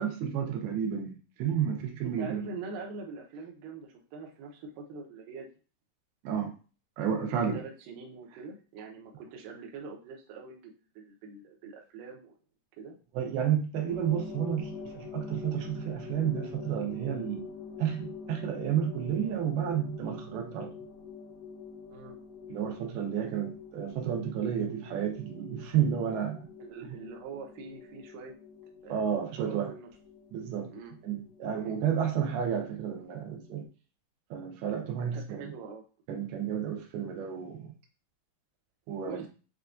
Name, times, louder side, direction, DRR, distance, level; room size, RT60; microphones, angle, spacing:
voice 1, 0.0-2.5 6.2-6.5 7.0-7.6 13.1-17.5 17.8-20.7 22.5-26.5 28.9-29.7 30.3-30.7 31.0-33.7 34.3-35.2 36.1-37.7 38.9-39.2, right 8 dB, 90° right, 3 dB, 2.7 m, -31 dB
voice 2, 2.0-5.5 7.3-12.3 12.8-13.0 21.9-22.2 26.6-28.3 28.8-29.0 29.4-29.9 30.7-31.0 31.5-32.0 35.1-35.8 39.0-39.3, right 4 dB, 75° right, 1 dB, 2.2 m, -44 dB
sound 1, 13.9-33.7, left 6 dB, 75° left, 2.8 m, -46 dB
6.7 x 2.3 x 2.5 m, 0.35 s
omnidirectional pair, 4.4 m